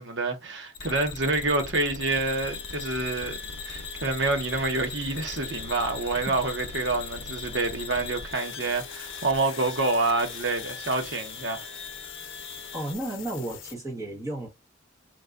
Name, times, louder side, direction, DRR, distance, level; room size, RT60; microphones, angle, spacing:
voice 1, 0.0-11.7, right 3 dB, 65° right, 0.9 m, -27 dB
sound 1, 0.7-13.7, left 6 dB, 80° left, 0.6 m, -40 dB
sound 2, 2.1-12.9, left 4 dB, 30° left, 0.7 m, -43 dB
voice 2, 12.7-14.5, right 1 dB, 15° right, 1.2 m, -33 dB
3.8 x 2.7 x 2.4 m
head